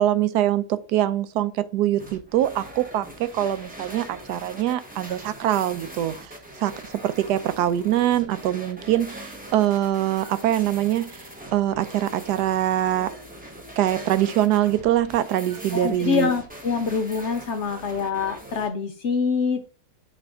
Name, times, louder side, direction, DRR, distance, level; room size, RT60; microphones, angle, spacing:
voice 1, 0.0-11.3 11.5-13.1 13.8-16.3, right 12 dB, 90° right, 1.2 m, -23 dB
sound 1, 2.0-18.7, right 1 dB, 5° right, 1.0 m, -42 dB
voice 2, 15.7-19.6, left 5 dB, 60° left, 0.8 m, -25 dB
8.2 x 3.3 x 3.7 m
omnidirectional pair, 1.7 m